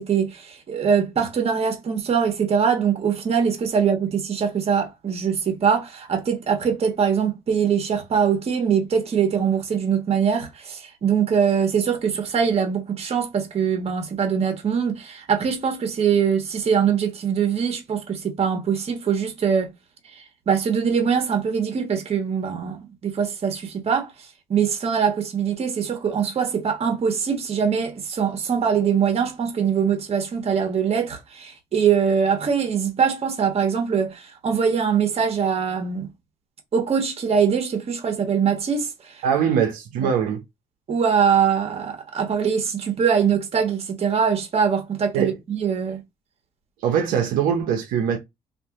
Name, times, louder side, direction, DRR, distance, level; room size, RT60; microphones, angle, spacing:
voice 1, 0.0-19.7 20.5-24.1 24.5-36.1 36.7-39.1 40.0-40.1 40.9-46.0, right 7 dB, 45° right, 1.2 m, -22 dB
voice 2, 39.2-40.4 45.1-45.4 46.8-48.2, right 8 dB, 85° right, 0.8 m, -22 dB
2.7 x 2.6 x 3.6 m
cardioid pair, 90°, 14 cm